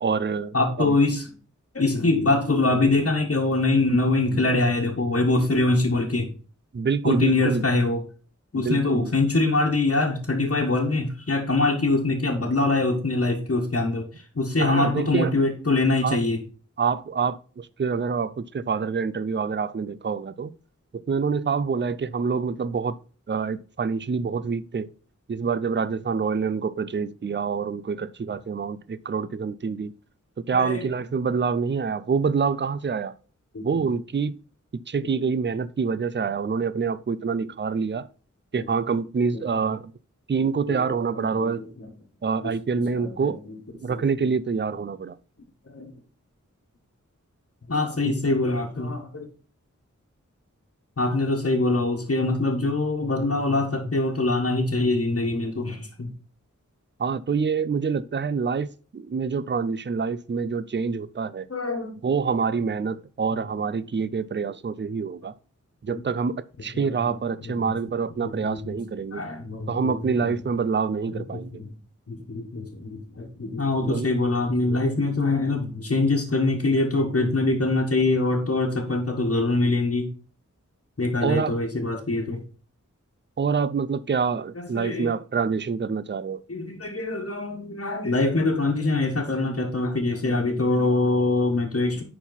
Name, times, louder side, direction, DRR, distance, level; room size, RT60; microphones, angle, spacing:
voice 1, 0.0-1.0 6.7-7.6 8.5-9.1 14.6-15.3 16.0-16.2 16.8-20.5 20.9-23.0 23.3-24.9 25.3-29.9 30.5-33.1 33.6-34.4 34.9-38.1 38.5-39.9 40.3-41.7 42.2-43.4 43.8-45.2 48.0-48.1 57.0-61.5 62.0-65.3 65.8-69.2 69.7-71.6 73.8-74.1 81.2-81.6 83.4-86.4, right 5 dB, 35° right, 0.5 m, -26 dB
voice 2, 0.5-1.2 1.7-6.3 7.0-8.0 8.5-16.4 30.5-30.8 33.5-33.9 39.3-39.6 40.7-40.8 41.1-41.5 41.8-41.9 42.4-42.5 43.0-43.6 43.9-44.0 45.7-45.9 47.7-49.3 51.0-56.1 61.5-62.0 65.9-66.0 66.7-67.1 67.4-67.7 68.2-68.7 69.1-70.3 71.3-71.7 72.1-80.1 81.0-82.4 84.5-85.1 86.5-92.0, left 2 dB, 50° left, 1.4 m, -24 dB
10.5 x 4.2 x 4.0 m
wide cardioid pair, 65°, 31 cm